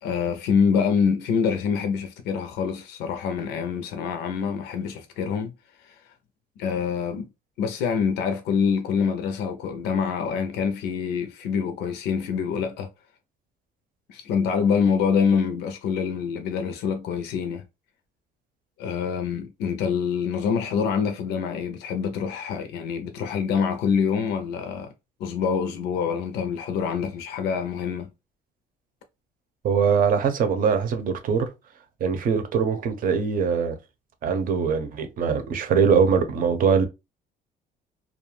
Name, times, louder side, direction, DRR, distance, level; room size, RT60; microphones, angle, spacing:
voice 1, 0.0-5.5 5.8-6.0 6.6-7.3 7.6-12.9 14.1-17.6 18.8-24.9 25.2-28.1, left 6 dB, 80° left, 0.5 m, -25 dB
voice 2, 29.6-31.5 32.0-33.8 34.2-36.8, right 6 dB, 55° right, 0.7 m, -22 dB
2.4 x 2.2 x 3.1 m
cardioid pair, 110°, 17 cm